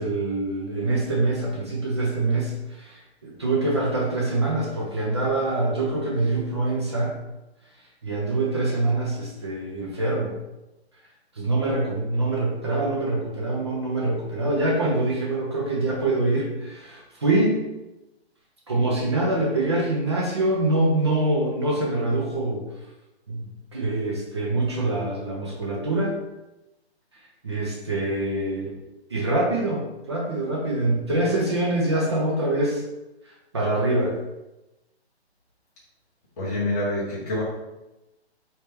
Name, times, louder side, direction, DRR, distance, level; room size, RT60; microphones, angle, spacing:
voice 1, 0.0-7.2 8.0-10.3 11.4-17.6 18.7-22.6 23.3-23.4 23.7-26.1 27.4-28.8 29.1-32.8 33.5-34.1, right 2 dB, 25° right, -3 dB, 0.5 m, -24 dB
voice 2, 36.4-37.4, left 1 dB, 15° left, -9 dB, 0.6 m, -26 dB
4.3 x 3.3 x 3.3 m, 0.98 s
hypercardioid pair, 160°, 33 cm